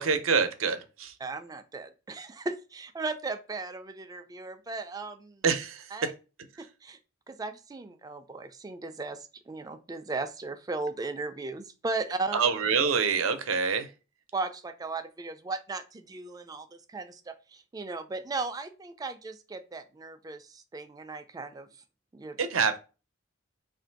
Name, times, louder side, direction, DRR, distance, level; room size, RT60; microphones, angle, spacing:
voice 1, 0.0-1.2 5.4-6.1 12.3-13.9 22.4-22.8, right 5 dB, 85° right, 0.6 m, -26 dB
voice 2, 1.2-5.4 5.9-6.1 6.6-7.0 7.3-12.4 14.3-21.7 22.1-22.4, right 3 dB, 20° right, 0.3 m, -36 dB
3.2 x 2.5 x 4.4 m
head